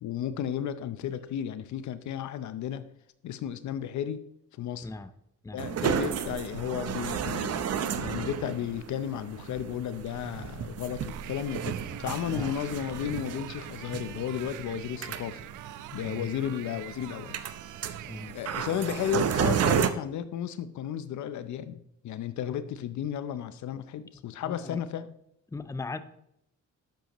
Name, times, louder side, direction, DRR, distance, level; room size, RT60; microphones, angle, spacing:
voice 1, 0.0-2.9 3.2-4.2 4.6-4.9 5.5-15.4 15.9-17.4 18.3-25.1, left 10 dB, 70° left, 13 dB, 0.7 m, -33 dB
sound 1, 5.6-19.9, right 8 dB, 55° right, 0.8 m, -33 dB
sound 2, 11.1-18.4, right 14 dB, 85° right, 0.6 m, -46 dB
sound 3, 11.4-16.4, left 1 dB, 55° left, 2.8 m, -56 dB
voice 2, 18.0-18.4 24.4-24.8 25.5-26.0, left 3 dB, 10° left, 12 dB, 0.6 m, -38 dB
11.5 x 7.7 x 3.0 m, 0.78 s
cardioid pair, 90°, 30 cm